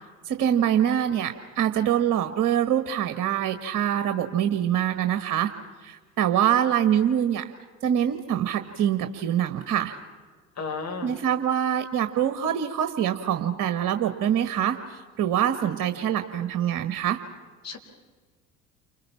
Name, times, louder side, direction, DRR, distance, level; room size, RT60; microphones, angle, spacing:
voice 1, 0.2-5.5 5.8-7.5 7.8-10.0 11.0-17.2, right 10 dB, 45° right, 9 dB, 1.5 m, -24 dB
voice 2, 10.6-11.1 17.6-17.8, left 4 dB, 35° left, 3 dB, 4.5 m, -33 dB
29.5 x 25.5 x 5.8 m, 1.5 s
figure-of-eight pair, 60°, 43 cm